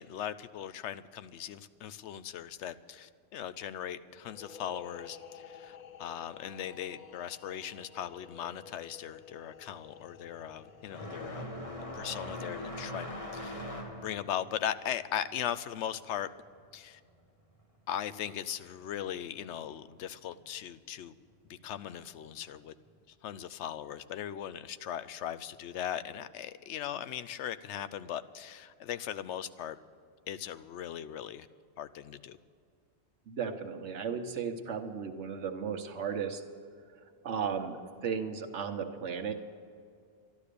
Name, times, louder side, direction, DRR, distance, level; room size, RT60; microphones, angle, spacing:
voice 1, 0.0-11.4 11.8-13.7 14.0-16.3 16.7-17.0 17.9-21.1 21.5-22.7 23.2-29.8 30.3-31.5 31.8-32.4, left 10 dB, 85° left, 14 dB, 0.9 m, -39 dB
sound 1, 4.2-13.7, left 6 dB, 50° left, 0.8 m, -53 dB
sound 2, 8.6-8.7 8.9-17.3 17.6-18.6 19.6-19.7 20.5-20.6 22.3-22.5, left 1 dB, 30° left, 1.8 m, -42 dB
voice 2, 33.3-36.4 36.9-39.3, right 6 dB, 85° right, 5 dB, 1.3 m, -35 dB
12.0 x 12.0 x 6.8 m, 2.3 s
omnidirectional pair, 1.1 m